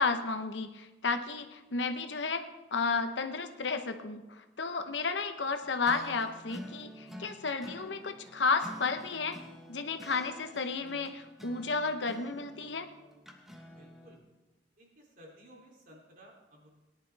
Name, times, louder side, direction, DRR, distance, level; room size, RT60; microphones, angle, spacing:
voice 1, 0.0-2.4 2.7-9.4 9.7-12.9, left 4 dB, 85° left, 8 dB, 0.9 m, -32 dB
sound 1, 5.6-14.2, equal, ahead, 1.2 m, -49 dB
voice 2, 13.8-14.2 14.8-16.7, equal, 50° right, -1 dB, 2.9 m, -56 dB
18.5 x 11.0 x 3.4 m, 1.1 s
head